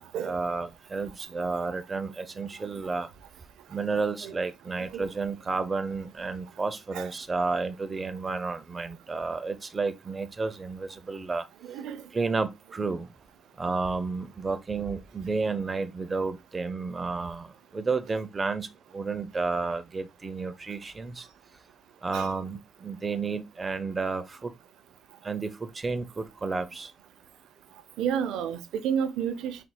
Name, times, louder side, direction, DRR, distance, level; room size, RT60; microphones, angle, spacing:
voice 1, 0.0-3.1 3.7-11.4 12.1-13.1 13.6-17.5 17.7-21.3 22.0-24.5 25.2-26.9, right 4 dB, 30° right, 0.6 m, -31 dB
voice 2, 11.6-12.0 22.1-22.3 28.0-29.6, right 8 dB, 90° right, 0.5 m, -31 dB
4.3 x 4.2 x 2.2 m
cardioid pair, 90°, 0 cm